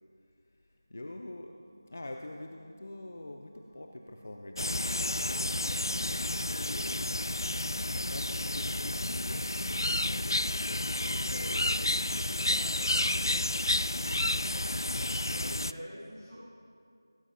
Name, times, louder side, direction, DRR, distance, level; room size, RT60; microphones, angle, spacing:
voice 1, 0.9-1.5 1.9-5.1 6.0-7.1 7.8-10.2 10.7-13.9 14.8-15.5, left 1 dB, 35° left, 3 dB, 0.5 m, -45 dB
sound 1, 1.2-10.9, left 1 dB, 10° right, 3.7 m, -62 dB
sound 2, 4.6-15.7, left 1 dB, 90° left, 0.3 m, -31 dB
voice 2, 5.4-5.8 15.3-16.4, equal, 15° left, -17 dB, 2.8 m, -45 dB
17.0 x 16.5 x 2.7 m, 2.5 s
figure-of-eight pair, 180°, 2 cm